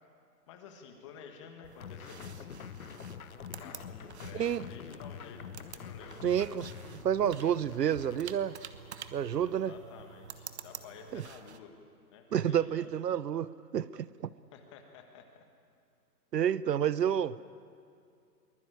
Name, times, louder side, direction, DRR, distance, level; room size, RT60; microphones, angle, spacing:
voice 1, 0.5-2.5 3.6-6.3 9.4-11.8 12.1-12.9 14.5-15.4, left 6 dB, 20° left, 1.5 m, -51 dB
sound 1, 1.6-11.6, right 7 dB, 40° right, 1.3 m, -49 dB
sound 2, 1.8-8.2, left 8 dB, 60° left, 1.2 m, -46 dB
voice 2, 6.2-6.7 7.0-8.6 9.1-9.7 11.1-11.2 12.3-14.3 16.3-17.4, right 9 dB, 75° right, 0.8 m, -29 dB
23.5 x 20.5 x 9.2 m
hypercardioid pair, 165°, 50 cm